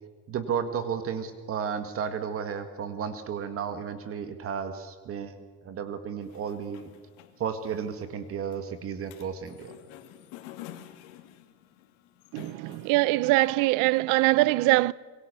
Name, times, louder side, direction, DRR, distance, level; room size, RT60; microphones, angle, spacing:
voice 1, 0.3-6.9 7.4-9.7, right 7 dB, 35° right, 1.9 m, -33 dB
sound 1, 6.2-13.5, left 13 dB, 75° left, 2.6 m, -49 dB
voice 2, 12.3-14.9, right 20 dB, 55° right, 0.6 m, -23 dB
26.5 x 22.5 x 6.9 m
cardioid pair, 150°, 38 cm